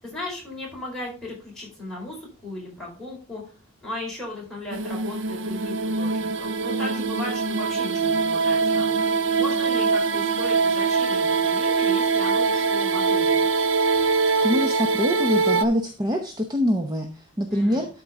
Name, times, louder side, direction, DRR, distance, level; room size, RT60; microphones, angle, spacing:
voice 1, 0.0-3.4 3.8-9.0 9.4-13.5 17.5-17.8, left 2 dB, ahead, -5 dB, 4.4 m, -36 dB
sound 1, 4.7-15.7, right 4 dB, 60° right, 0.6 m, -23 dB
voice 2, 14.4-17.9, left 1 dB, 20° right, 4 dB, 0.8 m, -24 dB
12.0 x 4.7 x 3.6 m, 0.37 s
head